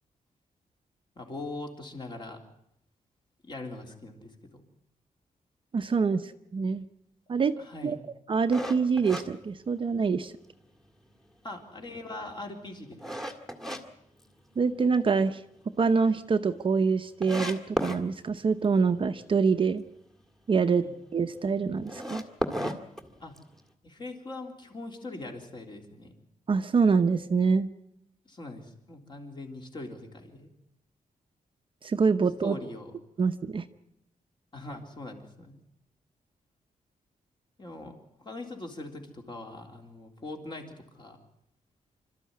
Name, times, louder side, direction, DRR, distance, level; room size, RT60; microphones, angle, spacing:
voice 1, 1.2-2.4 3.4-4.6 7.6-8.0 11.4-13.0 20.8-21.0 23.2-23.4 23.8-26.1 28.3-30.5 32.4-32.9 34.5-35.6 37.6-41.2, left 2 dB, 35° left, 3 dB, 3.5 m, -41 dB
voice 2, 5.7-6.8 7.3-7.5 7.8-8.0 8.3-10.3 14.6-15.4 15.8-19.8 20.5-20.9 21.1-22.2 26.5-27.7 31.8-32.6 33.2-33.6, right 5 dB, 40° right, 8 dB, 0.8 m, -25 dB
sound 1, 8.5-10.2 10.6-10.7 11.3-13.8 14.2-15.0 15.3-15.4 15.8-15.9 16.0-16.1 16.8-16.9 17.2-18.0 21.8-23.6, equal, 5° left, 1.9 m, -34 dB
27.5 x 13.5 x 9.5 m, 0.80 s
wide cardioid pair, 165°, 14 cm